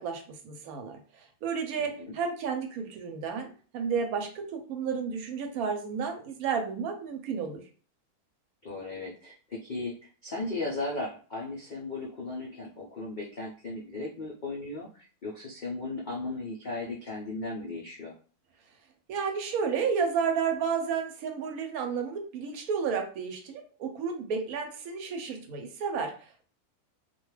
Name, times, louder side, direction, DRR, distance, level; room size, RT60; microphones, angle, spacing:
voice 1, 0.0-7.6 19.1-26.1, right 6 dB, 75° right, 4 dB, 1.0 m, -32 dB
voice 2, 1.8-2.2 8.6-18.1, left 2 dB, 65° left, -4 dB, 0.4 m, -36 dB
2.4 x 2.2 x 3.1 m, 0.40 s
omnidirectional pair, 1.6 m